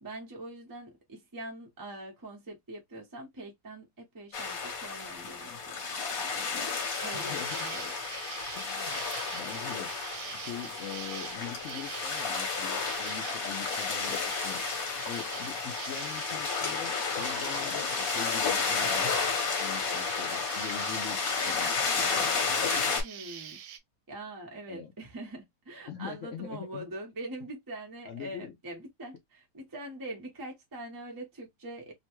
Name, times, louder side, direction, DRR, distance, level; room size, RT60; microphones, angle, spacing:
voice 1, 0.0-5.8 6.2-7.9 23.0-23.6 24.1-31.9, right 1 dB, 20° right, 0.6 m, -43 dB
sound 1, 4.3-23.0, left 5 dB, 55° left, 1.2 m, -32 dB
Insect, 6.7-23.8, right 9 dB, 80° right, 1.2 m, -43 dB
voice 2, 7.1-7.7 8.6-9.0 9.3-9.9 10.3-14.6 15.1-19.1 19.6-21.7 24.7-24.9 25.9-26.9 28.1-28.5, left 8 dB, 90° left, 0.6 m, -43 dB
3.0 x 2.2 x 2.9 m
omnidirectional pair, 2.0 m